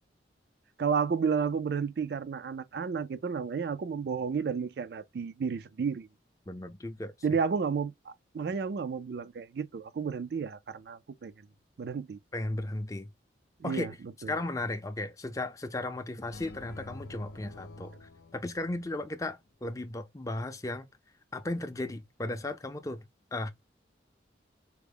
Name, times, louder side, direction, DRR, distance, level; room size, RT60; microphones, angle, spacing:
voice 1, 0.8-6.1 7.2-11.3 11.8-12.2 13.6-13.9 14.2-14.3, right 6 dB, 60° right, 0.3 m, -32 dB
voice 2, 6.5-7.1 12.3-13.1 13.6-13.9 14.3-20.9 21.3-23.0 23.3-23.5, left 2 dB, 20° left, 0.4 m, -35 dB
sound 1, 16.3-19.3, left 2 dB, 70° left, 0.5 m, -48 dB
4.5 x 2.0 x 3.4 m
head